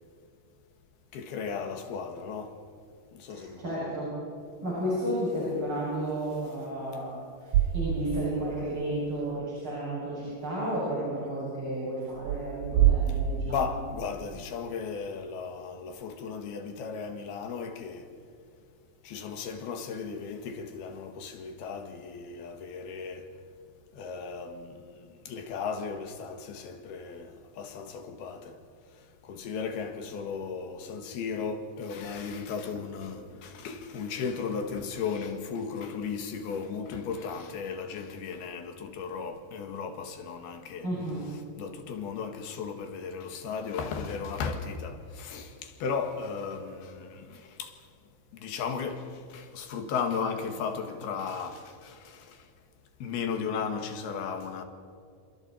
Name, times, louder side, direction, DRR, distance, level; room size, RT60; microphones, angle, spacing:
voice 1, 1.1-2.6 3.1-3.7 13.5-18.1 19.0-23.3 23.9-28.6 29.2-40.9 41.6-47.8 48.3-52.4 53.0-54.6, left 5 dB, 75° left, 3.7 m, -35 dB
voice 2, 3.3-4.1 4.6-13.7 40.8-41.3, right 1 dB, 30° right, 8.5 m, -32 dB
sound 1, 7.5-8.5 8.8-8.9 12.1-14.2, right 11 dB, 70° right, 2.5 m, -26 dB
29.0 x 27.0 x 4.5 m
omnidirectional pair, 4.7 m